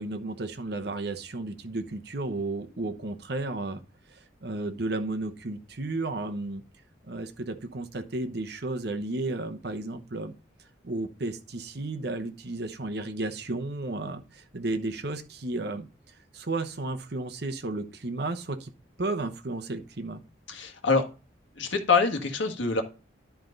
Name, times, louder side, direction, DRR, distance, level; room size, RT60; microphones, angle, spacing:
voice 1, 0.0-3.8 4.1-6.6 7.1-10.3 10.8-15.9 16.3-18.7 19.0-20.2, right 2 dB, 55° right, 7 dB, 0.9 m, -33 dB
voice 2, 20.5-21.0 21.5-22.8, left 4 dB, 80° left, 5 dB, 1.5 m, -25 dB
11.0 x 4.6 x 3.9 m, 0.33 s
head